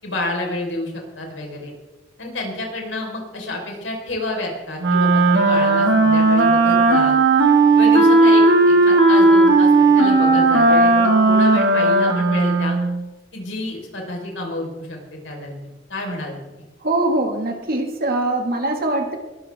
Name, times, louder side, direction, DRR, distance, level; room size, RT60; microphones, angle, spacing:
voice 1, 0.0-1.7 2.2-7.2 7.7-12.8 13.3-15.6 15.9-16.3, left 1 dB, 80° left, 0 dB, 4.6 m, -29 dB
Wind instrument woodwind instrument, 4.8-13.0, right 2 dB, 75° right, 2.4 m, -15 dB
voice 2, 16.8-19.2, right 2 dB, 50° right, 3 dB, 2.1 m, -22 dB
22.0 x 13.5 x 3.7 m, 1.1 s
head